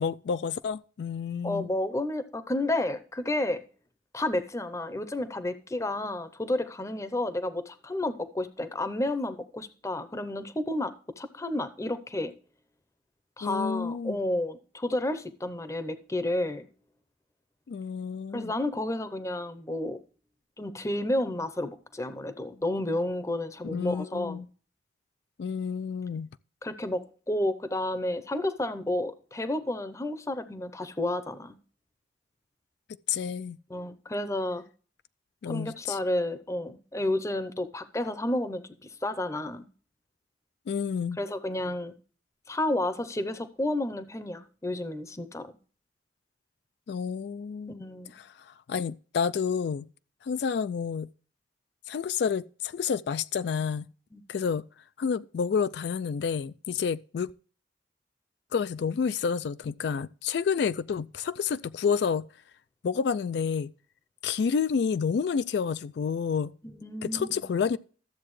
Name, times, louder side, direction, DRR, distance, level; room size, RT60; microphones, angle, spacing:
voice 1, 0.0-1.7 13.4-14.2 17.7-18.5 23.6-24.4 25.4-26.3 33.1-33.6 35.4-36.0 40.7-41.2 46.9-47.8 48.1-49.9 50.2-51.1 51.9-53.9 54.3-54.7 55.0-57.3 58.5-62.3 62.8-63.7 64.2-66.5 67.0-67.8, left 6 dB, 65° left, 0.3 m, -29 dB
voice 2, 1.4-3.6 4.1-12.3 13.4-16.7 18.3-20.0 20.6-24.5 26.6-31.6 33.7-34.6 35.5-39.7 41.2-41.9 42.5-45.5 47.8-48.1 54.1-54.2 66.6-67.4, left 1 dB, 15° left, 0.7 m, -31 dB
13.0 x 7.6 x 3.1 m
head